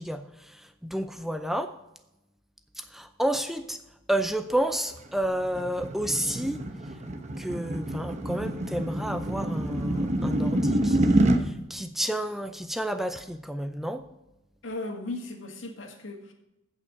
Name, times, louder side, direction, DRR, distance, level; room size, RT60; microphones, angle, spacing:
voice 1, 0.0-1.8 2.8-3.8 4.1-6.6 7.4-14.1, right 1 dB, ahead, 8 dB, 0.5 m, -31 dB
sound 1, 4.9-11.4, right 1 dB, 35° right, 1.0 m, -27 dB
voice 2, 14.6-16.3, left 2 dB, 75° left, 3 dB, 2.0 m, -36 dB
15.5 x 5.8 x 5.2 m, 0.93 s
head